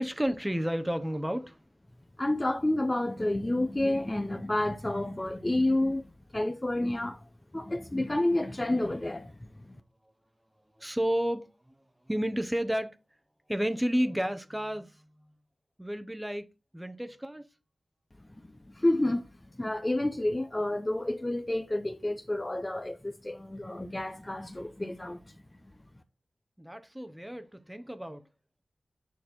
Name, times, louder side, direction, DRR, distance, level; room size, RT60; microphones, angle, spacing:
voice 1, 0.0-1.6 10.8-11.5 12.1-13.0 13.5-14.9 15.8-16.4 16.7-17.4 26.6-28.2, equal, 10° right, 0.9 m, -31 dB
voice 2, 2.2-9.8 18.4-19.3 19.5-25.2, left 1 dB, 20° left, 0.7 m, -30 dB
9.2 x 4.2 x 4.3 m
wide cardioid pair, 85°, 0 cm